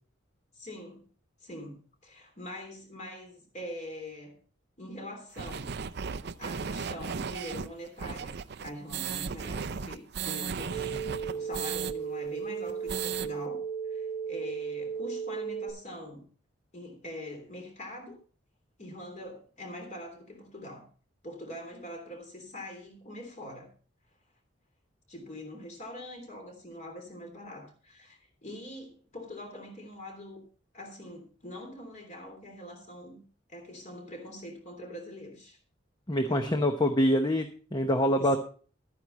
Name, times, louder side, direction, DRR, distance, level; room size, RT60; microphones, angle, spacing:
voice 1, 0.5-1.1 1.4-1.7 2.0-4.4 4.8-5.8 6.4-10.9 11.3-16.3 16.7-18.2 18.8-20.9 21.2-23.7 25.1-30.4 30.7-33.2 33.5-35.6 36.2-36.7 38.0-38.4, left 1 dB, 35° left, 3 dB, 3.2 m, -43 dB
sound 1, 5.4-11.9 12.3-12.4 12.7-13.3, right 6 dB, 55° right, 0.5 m, -35 dB
sound 2, 10.7-15.7, right 6 dB, 80° left, 5.1 m, -35 dB
voice 2, 36.1-38.4, equal, 20° left, 6 dB, 0.8 m, -25 dB
12.0 x 9.6 x 4.1 m, 0.40 s
head